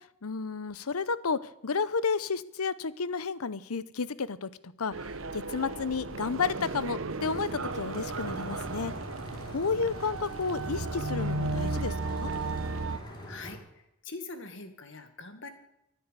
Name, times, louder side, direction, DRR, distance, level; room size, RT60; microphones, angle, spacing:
voice 1, 0.2-4.9 5.3-8.9 9.5-12.3, left 5 dB, 85° left, 17 dB, 0.8 m, -32 dB
sound 1, 4.9-13.0, right 3 dB, 65° right, 1.0 m, -34 dB
sound 2, 7.2-13.6, equal, 20° left, 3.8 m, -43 dB
voice 2, 13.3-15.5, left 3 dB, 55° left, 8 dB, 1.9 m, -43 dB
13.5 x 10.5 x 8.2 m, 0.84 s
head